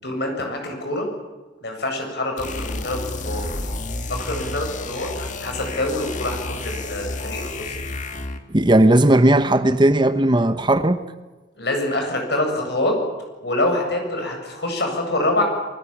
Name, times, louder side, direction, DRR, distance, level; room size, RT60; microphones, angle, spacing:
voice 1, 0.0-1.1 1.6-3.5 4.1-7.8 11.6-13.0 13.4-15.4, left 1 dB, 60° left, 7.9 m, -25 dB
sound 1, 2.4-8.5, left 2 dB, 40° left, 2.1 m, -30 dB
voice 2, 8.5-11.0, right 1 dB, 25° right, 1.0 m, -16 dB
28.5 x 21.0 x 7.4 m
head